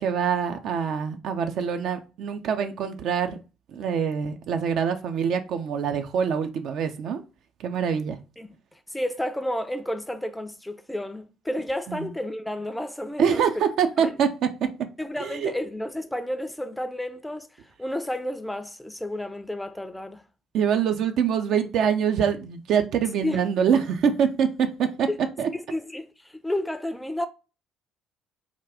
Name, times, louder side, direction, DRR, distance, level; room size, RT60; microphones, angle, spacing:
voice 1, 0.0-3.4 3.7-7.2 7.6-8.2 11.9-12.1 13.2-14.3 15.2-15.5 20.5-25.1 25.4-25.5, right 7 dB, 55° right, 0.4 m, -24 dB
voice 2, 8.4-13.6 14.0-14.2 15.0-20.2 23.2-23.5 25.1-25.2 25.5-27.3, left 1 dB, 5° left, 0.5 m, -31 dB
3.6 x 2.3 x 3.5 m
figure-of-eight pair, 50°, 0 cm